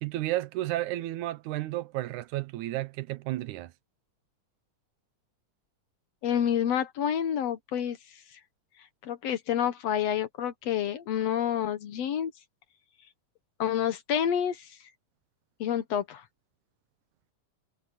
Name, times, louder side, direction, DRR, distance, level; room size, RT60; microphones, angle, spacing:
voice 1, 0.0-3.7, right 16 dB, 80° right, 2.1 m, -32 dB
voice 2, 6.2-8.0 9.0-12.3 13.6-14.7 15.6-16.2, left 9 dB, 65° left, 2.0 m, -28 dB
omnidirectional pair, 3.5 m